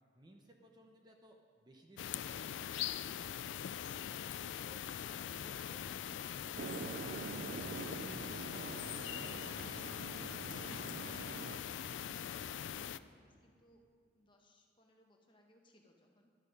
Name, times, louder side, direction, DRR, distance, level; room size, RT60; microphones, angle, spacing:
voice 1, 0.1-2.9 3.8-4.8 5.2-7.2, right 1 dB, 20° right, 2 dB, 0.8 m, -61 dB
sound 1, 2.0-13.0, left 10 dB, 85° left, 0.3 m, -42 dB
sound 2, 6.6-11.6, right 4 dB, 50° right, 0.4 m, -45 dB
voice 2, 9.3-13.8 14.1-16.3, left 1 dB, 25° left, 1 dB, 1.2 m, -65 dB
12.0 x 11.0 x 5.2 m, 2.2 s
head